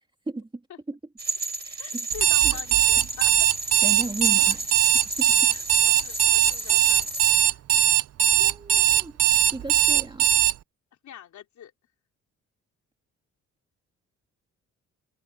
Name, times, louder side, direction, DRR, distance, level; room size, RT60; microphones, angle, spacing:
voice 1, 0.3-0.6 0.9-1.0 1.6-2.1 2.4-2.6 3.0-3.1 3.7-4.7 5.2-5.6 8.3-9.2 9.5-10.3, right 2 dB, 15° right, 2.3 m, -36 dB
sound 1, 1.2-7.3, right 2 dB, 35° right, 4.8 m, -33 dB
voice 2, 1.8-3.5 5.4-7.6 11.0-11.7, left 10 dB, 70° left, 4.2 m, -44 dB
Alarm, 2.1-10.5, right 12 dB, 55° right, 0.7 m, -20 dB
cardioid pair, 90°, 30 cm